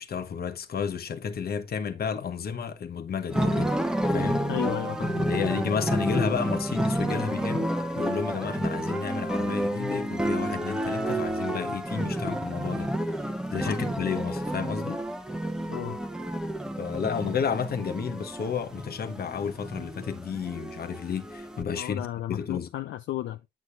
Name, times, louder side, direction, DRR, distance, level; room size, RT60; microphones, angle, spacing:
voice 1, 0.0-3.8 4.1-4.4 5.2-15.0 16.8-22.7, left 6 dB, 50° left, 1.2 m, -32 dB
sound 1, 3.3-21.6, right 1 dB, 5° right, 0.9 m, -30 dB
voice 2, 4.5-5.5 6.0-6.1 13.6-13.8 15.7-16.0 21.7-23.5, left 13 dB, 75° left, 0.6 m, -34 dB
8.4 x 6.1 x 2.6 m
cardioid pair, 90°, 20 cm